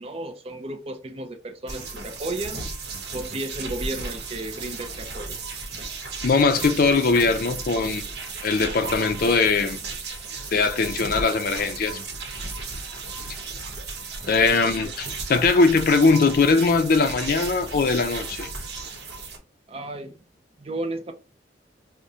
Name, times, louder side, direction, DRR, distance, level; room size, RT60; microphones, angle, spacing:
voice 1, 0.0-2.6 3.1-5.4 19.7-20.2 20.6-21.1, right 2 dB, 30° right, 0.4 m, -33 dB
sound 1, 1.7-19.4, right 3 dB, 65° right, 0.8 m, -35 dB
voice 2, 6.2-8.1 8.4-9.8 10.5-12.0 14.3-18.5, left 4 dB, 55° left, 0.4 m, -20 dB
4.7 x 2.1 x 2.7 m
head